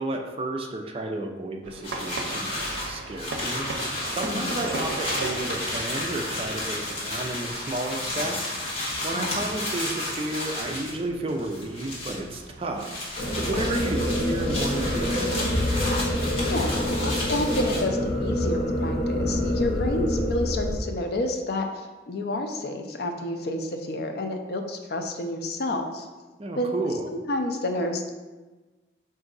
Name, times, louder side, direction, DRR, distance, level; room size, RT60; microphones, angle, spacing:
voice 1, 0.0-3.7 4.1-8.6 9.0-12.9 13.3-15.3 26.4-27.1, right 2 dB, 30° right, 3 dB, 0.4 m, -32 dB
sound 1, 1.6-13.9, right 2 dB, 90° right, 0.5 m, -39 dB
sound 2, 1.8-11.0 11.3-12.4 12.8-17.8, left 1 dB, 30° left, 1.3 m, -32 dB
voice 2, 4.3-4.6 9.1-9.4 16.4-26.1 26.6-26.7 27.1-28.1, left 1 dB, 60° left, 5 dB, 0.5 m, -29 dB
sound 3, 13.2-20.8, equal, 90° left, 1.1 m, -26 dB
4.8 x 2.6 x 3.8 m, 1.2 s
head